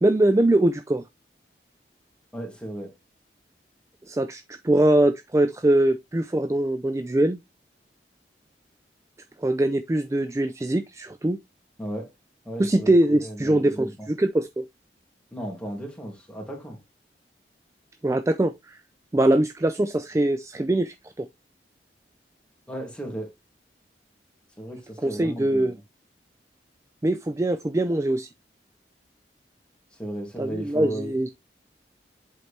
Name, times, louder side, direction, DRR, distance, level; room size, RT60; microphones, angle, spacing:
voice 1, 0.0-1.0 4.1-7.4 9.4-11.4 12.6-14.6 18.0-18.8 19.1-21.3 25.0-25.8 27.0-28.3 30.4-31.3, right 1 dB, 15° right, 0.3 m, -22 dB
voice 2, 2.3-2.9 11.8-12.1 12.4-14.1 15.3-16.8 22.7-23.3 24.6-25.7 29.9-31.1, right 1 dB, 5° left, 2.5 m, -35 dB
7.9 x 4.4 x 3.3 m
head